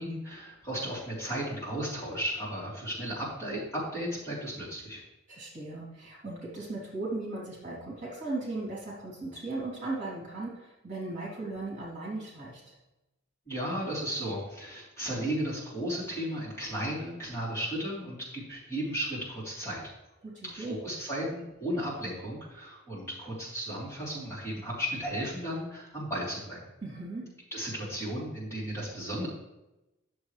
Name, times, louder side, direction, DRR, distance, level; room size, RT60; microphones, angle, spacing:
voice 1, 0.0-5.0 13.5-19.8 20.4-26.6 27.5-29.3, equal, 15° left, -8 dB, 3.6 m, -34 dB
voice 2, 5.3-12.7 20.2-20.8 26.8-27.2, right 2 dB, 35° right, -6 dB, 3.1 m, -37 dB
11.0 x 7.2 x 3.3 m, 0.96 s
head